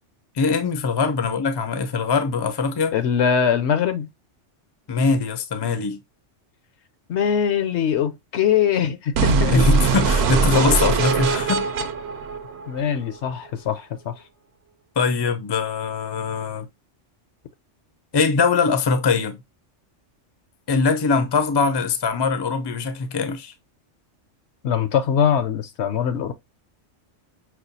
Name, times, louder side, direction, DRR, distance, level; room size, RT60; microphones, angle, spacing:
voice 1, 0.4-2.9 4.9-6.0 9.5-11.7 15.0-16.7 18.1-19.4 20.7-23.5, left 4 dB, 35° left, 0.4 m, -22 dB
voice 2, 2.9-4.1 7.1-9.7 12.7-14.2 24.6-26.3, left 8 dB, 70° left, 0.9 m, -22 dB
sound 1, 9.1-13.1, right 5 dB, 65° right, 0.8 m, -21 dB
6.1 x 2.3 x 2.6 m
omnidirectional pair, 1.2 m